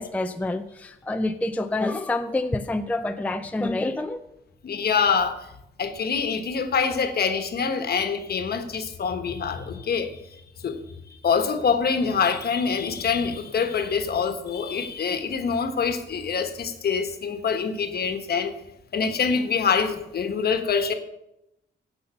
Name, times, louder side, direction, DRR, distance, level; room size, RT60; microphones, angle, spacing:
voice 1, 0.0-4.2, left 2 dB, 5° left, 8 dB, 0.4 m, -27 dB
voice 2, 4.6-5.4 5.8-10.1 10.6-10.8 11.2-18.5 18.9-20.9, left 6 dB, 55° left, 8 dB, 1.2 m, -25 dB
15.5 x 5.6 x 6.9 m, 0.88 s
wide cardioid pair, 180°, 19 cm